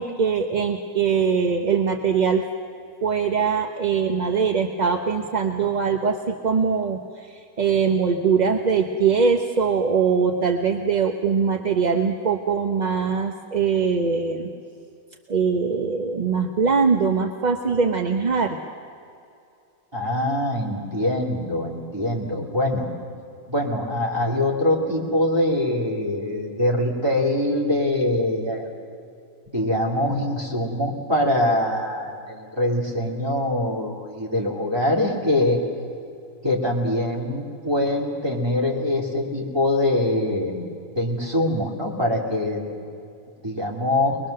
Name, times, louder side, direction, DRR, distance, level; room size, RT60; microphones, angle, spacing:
voice 1, 0.0-2.4 3.0-7.0 7.3-14.5 15.3-18.6, right 5 dB, 40° right, 4 dB, 0.7 m, -22 dB
voice 2, 19.9-22.9 23.5-28.7 29.5-35.6 36.4-40.6 41.0-42.6 43.4-44.2, left 1 dB, 15° right, -2 dB, 2.7 m, -23 dB
22.0 x 21.5 x 6.6 m, 2.5 s
omnidirectional pair, 1.6 m